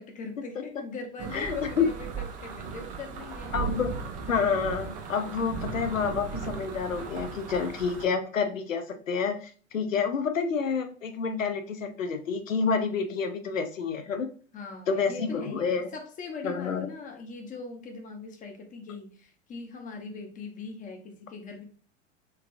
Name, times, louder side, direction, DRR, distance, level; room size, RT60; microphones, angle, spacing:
voice 1, 0.0-3.6 14.5-21.6, left 4 dB, 20° left, 3 dB, 0.7 m, -41 dB
sound 1, 1.2-8.1, right 6 dB, 20° right, 0.4 m, -37 dB
voice 2, 1.3-1.9 3.5-3.9 4.3-14.3 14.9-15.9 16.4-16.9, left 5 dB, 80° left, 8 dB, 0.6 m, -28 dB
3.4 x 3.3 x 2.5 m, 0.42 s
figure-of-eight pair, 85°, 39 cm